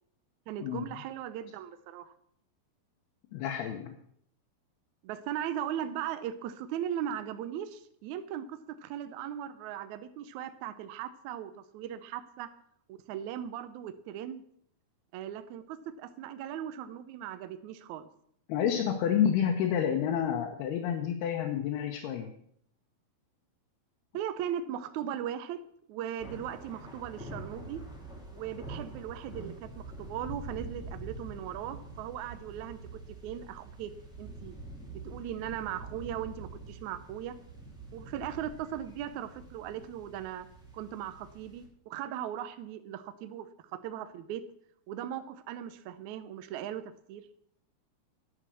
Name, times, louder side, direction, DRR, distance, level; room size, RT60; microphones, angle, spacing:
voice 1, 0.5-2.1 5.0-12.5 12.9-14.4 15.1-18.1 24.1-25.6 25.9-27.8 28.3-32.8 33.2-33.9 34.2-34.6 35.0-37.3 37.9-40.5 40.7-44.4 44.9-46.8 47.1-47.2, right 10 dB, 85° right, 11 dB, 1.6 m, -38 dB
voice 2, 3.3-4.0 18.5-22.3, left 9 dB, 90° left, 3 dB, 3.0 m, -29 dB
sound 1, 26.2-41.7, right 2 dB, ahead, 1.5 m, -46 dB
10.0 x 8.0 x 6.3 m, 0.67 s
omnidirectional pair, 4.4 m